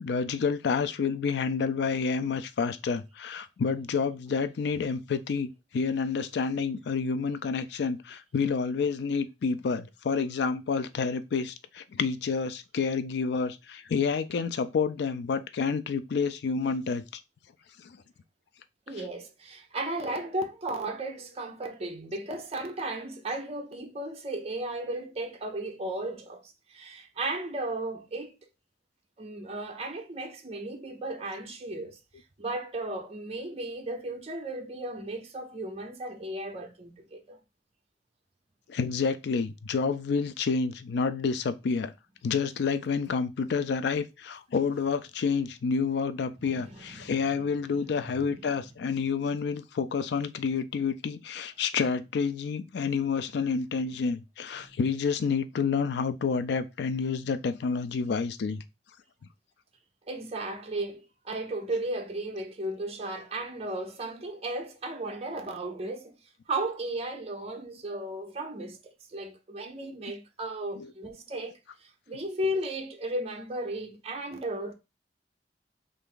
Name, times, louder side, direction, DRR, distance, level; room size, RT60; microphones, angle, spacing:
voice 1, 0.0-17.2 17.8-18.0 38.7-41.9 42.2-58.6 70.8-70.9, left 5 dB, 65° left, 0.4 m, -29 dB
voice 2, 18.9-28.3 29.2-32.0 32.4-37.4 46.4-47.3 47.7-48.5 54.7-54.8 60.1-66.2 66.5-74.7, right 1 dB, 35° right, 0.6 m, -35 dB
3.4 x 2.6 x 3.6 m
head